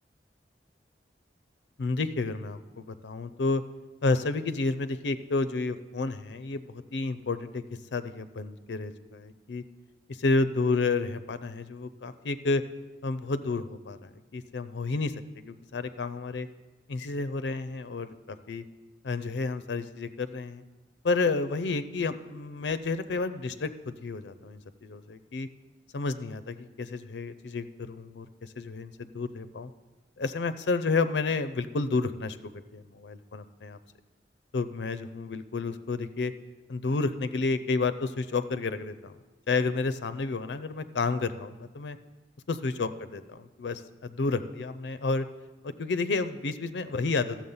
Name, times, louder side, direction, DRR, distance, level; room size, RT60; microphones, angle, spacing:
voice 1, 1.8-3.6 4.0-7.6 7.9-9.6 10.1-12.6 13.0-16.5 16.9-18.6 19.0-20.6 21.0-25.5 25.9-29.7 30.2-33.8 34.5-36.3 36.7-39.1 39.5-42.0 42.5-45.3 45.6-47.4, left 3 dB, 80° left, 13 dB, 0.5 m, -30 dB
13.5 x 7.3 x 5.5 m, 1.2 s
head